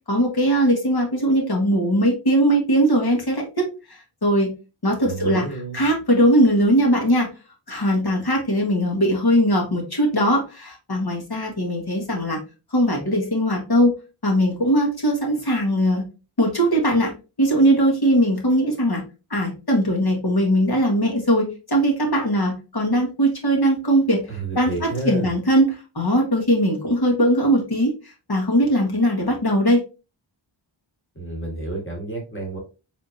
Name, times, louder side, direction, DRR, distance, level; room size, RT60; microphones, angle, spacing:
voice 1, 0.1-4.5 4.8-5.5 5.7-7.3 7.7-12.4 12.7-13.9 14.2-16.0 16.4-17.1 17.4-19.0 19.3-24.2 24.5-29.8, equal, 50° left, 0 dB, 1.6 m, -20 dB
voice 2, 5.0-5.8 24.3-25.3 31.2-32.6, right 3 dB, 25° left, 0 dB, 1.7 m, -30 dB
4.2 x 3.7 x 2.7 m, 0.30 s
wide cardioid pair, 55°, 47 cm